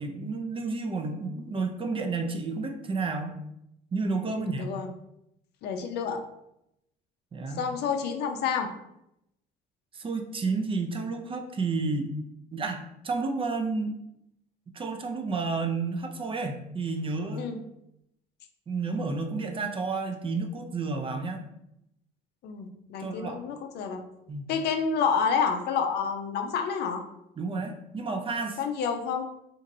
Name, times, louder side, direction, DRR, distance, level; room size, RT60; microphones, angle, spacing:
voice 1, 0.0-3.4 3.9-4.7 7.3-7.7 9.9-12.1 12.5-13.9 14.7-17.5 18.7-21.4 23.0-23.4 24.3-24.4 27.4-28.6, right 4 dB, 30° right, 5 dB, 0.4 m, -31 dB
voice 2, 4.3-4.9 5.6-6.2 7.6-8.7 17.3-17.6 22.4-24.0 24.5-27.0 28.6-29.3, left 6 dB, 60° left, 6 dB, 0.5 m, -29 dB
2.8 x 2.5 x 2.6 m, 0.81 s
supercardioid pair, 75°, 19 cm